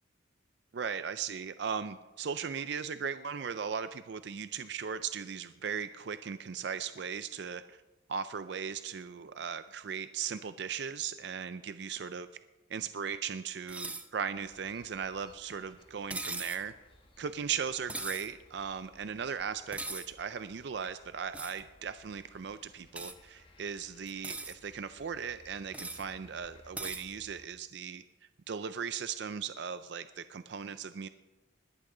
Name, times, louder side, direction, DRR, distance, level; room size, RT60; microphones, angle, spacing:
voice 1, 0.7-7.8 8.1-12.3 12.7-16.7 17.2-28.0 28.5-31.1, right 6 dB, 60° right, 12 dB, 0.4 m, -38 dB
sound 1, 13.7-14.1 16.1-16.6 17.9-18.3 19.7-20.1 21.3-21.6 22.9-23.1 24.1-24.5 25.7-26.0 26.8-27.0, right 2 dB, 5° right, 0.5 m, -39 dB
spring ambience stereo, 14.3-27.5, left 1 dB, 25° left, 1.4 m, -61 dB
20.0 x 11.5 x 3.8 m, 1.2 s
head